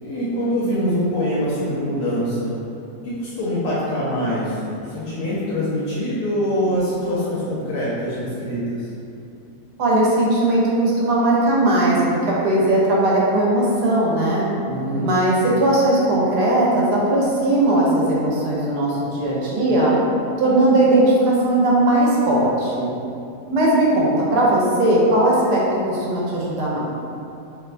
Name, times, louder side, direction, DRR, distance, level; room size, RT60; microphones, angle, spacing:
voice 1, 0.0-2.5 3.0-8.9 14.7-15.1, equal, 80° left, -8 dB, 1.1 m, -24 dB
voice 2, 9.8-12.0 12.3-14.5 15.0-19.9 20.4-22.9 23.5-26.8, right 1 dB, 85° right, -5 dB, 1.2 m, -18 dB
2.9 x 2.1 x 2.4 m, 2.6 s
omnidirectional pair, 1.7 m